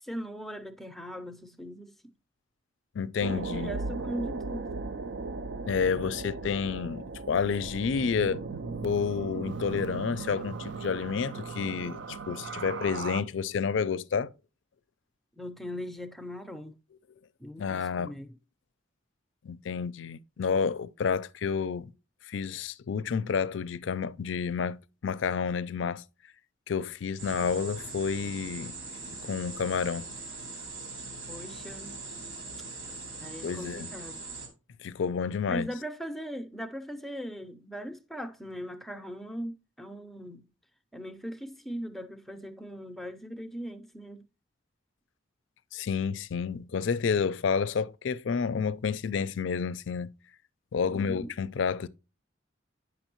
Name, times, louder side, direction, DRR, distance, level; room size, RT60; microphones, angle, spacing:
voice 1, 0.0-2.2 3.3-4.7 15.4-16.7 17.4-18.3 31.3-32.1 33.2-34.3 35.5-40.5 40.9-44.2 50.9-51.3, equal, ahead, 0.5 m, -39 dB
voice 2, 2.9-3.7 5.7-8.4 8.8-14.3 17.6-18.1 19.4-21.9 22.3-26.0 26.7-28.7 29.1-30.1 33.4-33.9 34.8-35.7 45.7-50.1 50.7-51.9, left 6 dB, 75° left, 0.4 m, -30 dB
sound 1, 3.2-13.2, right 4 dB, 65° right, 0.4 m, -37 dB
sound 2, 27.2-34.5, right 3 dB, 80° right, 2.6 m, -41 dB
9.0 x 5.9 x 3.0 m
head